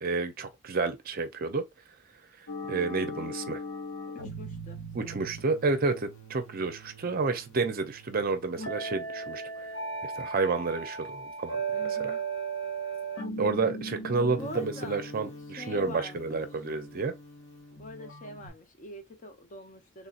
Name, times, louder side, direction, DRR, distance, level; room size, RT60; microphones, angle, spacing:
voice 1, 0.0-1.6 2.7-3.6 4.9-9.4 10.0-11.6 11.9-12.2 13.4-17.1, right 4 dB, 45° right, 0.5 m, -30 dB
sound 1, 2.5-18.5, right 3 dB, 90° left, 1.0 m, -38 dB
voice 2, 4.2-5.3 11.7-12.2 14.3-15.0 15.6-16.5 17.8-20.1, left 1 dB, 40° left, 0.6 m, -45 dB
3.4 x 2.7 x 2.4 m
head